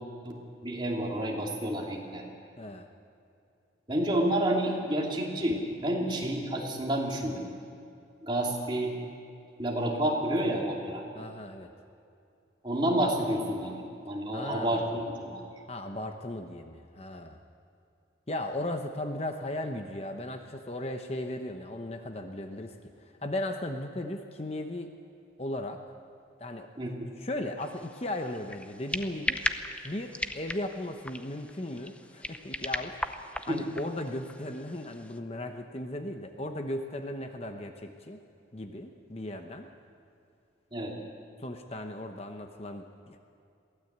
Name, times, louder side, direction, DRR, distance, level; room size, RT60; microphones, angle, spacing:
voice 1, 0.6-2.2 3.9-7.4 8.2-8.9 9.6-11.0 12.6-15.4 26.8-26.9 33.5-33.6 40.7-40.9, right 1 dB, 25° right, -1 dB, 2.8 m, -29 dB
voice 2, 11.1-11.7 14.3-14.8 15.7-17.4 18.3-24.9 25.4-25.8 26.4-26.7 27.2-29.4 29.8-33.2 33.5-38.2 38.5-39.7 41.4-43.2, left 1 dB, 35° left, 5 dB, 0.9 m, -36 dB
sound 1, 27.6-35.2, left 1 dB, 5° left, 0.6 m, -38 dB
22.5 x 16.0 x 8.1 m, 2.6 s
head